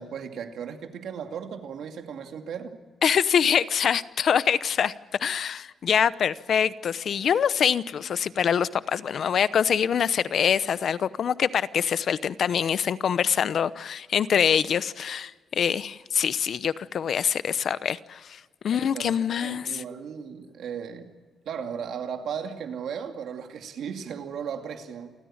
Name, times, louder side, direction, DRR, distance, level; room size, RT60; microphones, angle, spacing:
voice 1, 0.0-2.8 18.9-21.1 21.5-25.1, right 7 dB, 80° right, 5 dB, 2.5 m, -36 dB
voice 2, 3.0-4.9 5.2-19.8, left 8 dB, 60° left, 16 dB, 0.8 m, -25 dB
29.0 x 14.5 x 8.8 m, 1.5 s
cardioid pair, 115°, 0 cm